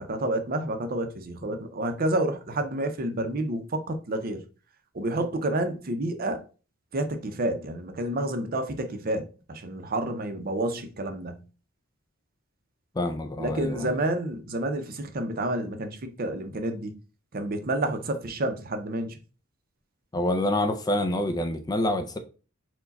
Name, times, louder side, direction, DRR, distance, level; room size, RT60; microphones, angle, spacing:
voice 1, 0.0-4.4 4.9-6.4 6.9-11.4 13.4-16.9 17.3-19.2, right 1 dB, 45° right, 0.6 m, -29 dB
voice 2, 13.0-14.0 20.1-22.2, left 1 dB, 20° left, 0.3 m, -27 dB
4.5 x 2.2 x 4.0 m
head